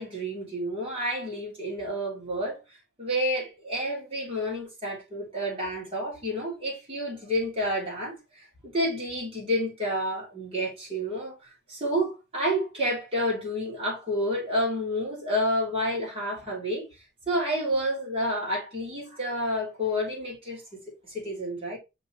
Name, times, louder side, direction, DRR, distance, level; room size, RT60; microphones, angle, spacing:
voice 1, 0.0-2.6 3.0-11.4 11.7-16.9 17.3-20.6 21.1-21.8, equal, 30° right, 3.8 m, -29 dB
6.0 x 4.2 x 4.3 m
head